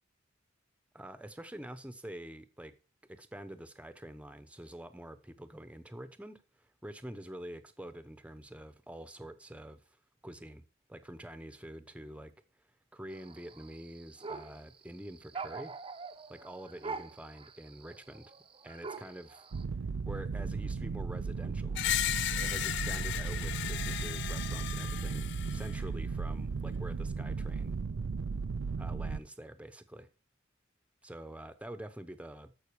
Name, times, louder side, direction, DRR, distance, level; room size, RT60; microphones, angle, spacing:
voice 1, 0.9-2.7 3.1-9.8 10.2-10.6 10.9-12.3 12.9-15.8 16.3-18.3 18.6-19.4 20.0-21.8 22.3-27.7 28.8-30.1 31.0-32.5, right 1 dB, 5° right, 0.9 m, -46 dB
sound 1, 13.1-19.6, right 4 dB, 25° right, 0.8 m, -45 dB
sound 2, 19.5-29.2, right 4 dB, 90° right, 0.5 m, -36 dB
Screech, 21.7-25.8, left 12 dB, 60° left, 0.4 m, -35 dB
14.0 x 5.9 x 4.7 m
head